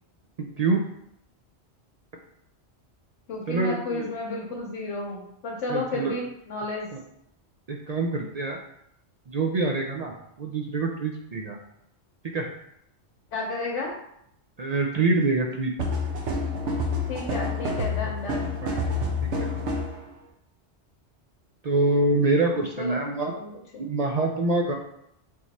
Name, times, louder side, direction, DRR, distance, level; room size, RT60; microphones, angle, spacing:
voice 1, 0.4-0.8 3.5-4.1 5.7-6.1 7.7-8.6 9.3-11.6 12.3-12.5 14.6-15.7 18.3-18.4 18.6-18.8 19.4-19.5 21.6-23.3 23.8-24.7, right 2 dB, 60° right, 1 dB, 0.4 m, -25 dB
voice 2, 3.3-6.9 13.3-13.9 17.1-18.5 22.8-23.8, left 2 dB, 85° left, -3 dB, 1.1 m, -32 dB
sound 1, 15.8-20.0, left 2 dB, 80° right, 1.1 m, -28 dB
3.8 x 3.1 x 4.0 m, 0.76 s
omnidirectional pair, 1.2 m